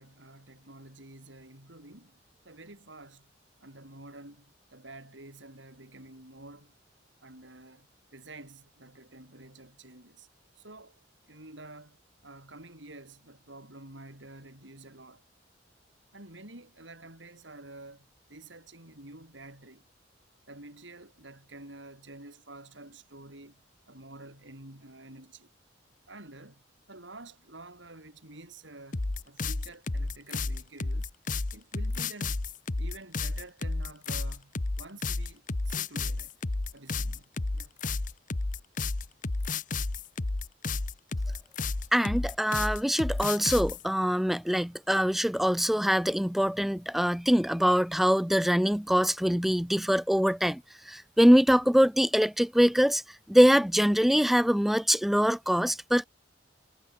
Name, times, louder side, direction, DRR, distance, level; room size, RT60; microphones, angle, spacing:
voice 1, 0.0-3.3 3.6-6.8 7.2-10.3 10.6-11.0 11.3-15.2 16.1-19.9 20.5-25.5 26.1-26.6 26.9-31.1 31.5-32.4 32.8-36.3 36.7-37.7, right 2 dB, 70° right, 6.8 m, -49 dB
sound 1, 28.9-43.8, left 3 dB, 45° left, 0.9 m, -31 dB
voice 2, 41.9-53.0 53.3-56.1, equal, ahead, 0.3 m, -24 dB
head